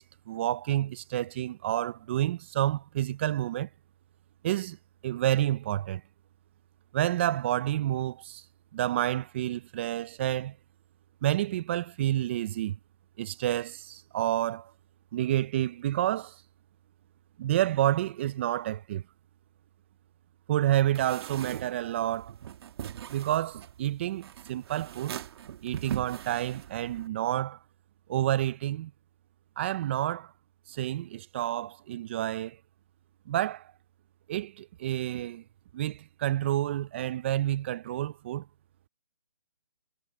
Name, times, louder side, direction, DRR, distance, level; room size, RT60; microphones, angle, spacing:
voice 1, 0.0-3.7 4.4-4.8 5.0-6.0 6.9-8.4 8.7-10.6 11.2-12.8 13.2-14.7 15.1-16.4 17.4-19.0 20.5-22.3 23.1-25.1 25.6-27.6 28.1-28.9 29.6-30.3 30.7-32.6 33.3-33.6 34.3-35.4 35.7-38.5, right 13 dB, 20° right, 0.4 m, -29 dB
sound 1, 20.9-27.1, right 10 dB, 45° right, 1.9 m, -41 dB
hypercardioid pair, 155°, 18 cm